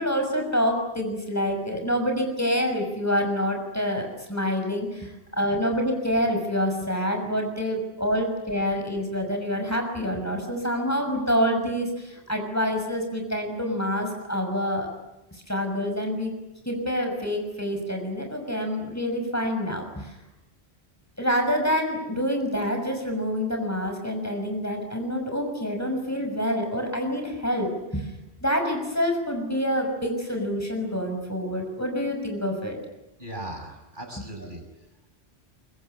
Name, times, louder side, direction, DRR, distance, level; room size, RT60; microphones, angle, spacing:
voice 1, 0.0-14.9 15.5-16.3 16.6-20.1 21.2-28.1 28.4-32.8, equal, 15° left, 3 dB, 6.3 m, -27 dB
voice 2, 33.2-34.9, right 1 dB, 45° right, 3 dB, 6.2 m, -38 dB
25.0 x 23.5 x 9.8 m, 0.95 s
omnidirectional pair, 1.1 m